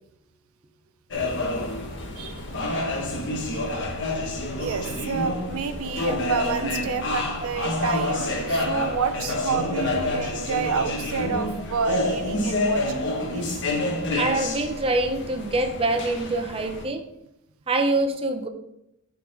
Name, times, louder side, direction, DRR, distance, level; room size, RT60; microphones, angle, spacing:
sound 1, 1.1-16.8, left 1 dB, 55° left, 1.3 m, -28 dB
voice 1, 4.5-13.5, right 5 dB, 70° right, 9 dB, 0.5 m, -29 dB
voice 2, 14.2-17.0 17.7-18.5, right 2 dB, 25° right, 6 dB, 0.6 m, -25 dB
8.2 x 3.9 x 4.6 m, 0.83 s
head